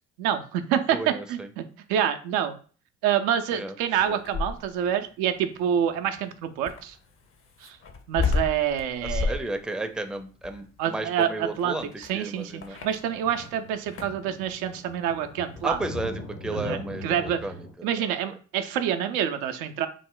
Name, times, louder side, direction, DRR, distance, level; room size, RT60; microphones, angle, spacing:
voice 1, 0.2-1.6 1.9-2.6 3.0-7.0 7.6-7.8 8.1-9.4 10.8-15.8 16.5-17.4 17.8-19.9, right 9 dB, 80° right, 7 dB, 0.5 m, -27 dB
voice 2, 0.9-1.5 3.5-3.7 4.1-4.2 9.0-12.8 15.6-17.7 17.9-18.1, right 2 dB, ahead, 7 dB, 0.5 m, -33 dB
sound 1, 4.0-4.9 6.7-13.5 13.8-14.3 15.6-15.8, left 4 dB, 40° left, 0.6 m, -32 dB
sound 2, 5.3-6.6 12.4-17.7, equal, 75° left, 1.2 m, -41 dB
3.1 x 2.0 x 3.7 m, 0.40 s
hypercardioid pair, 50°, 34 cm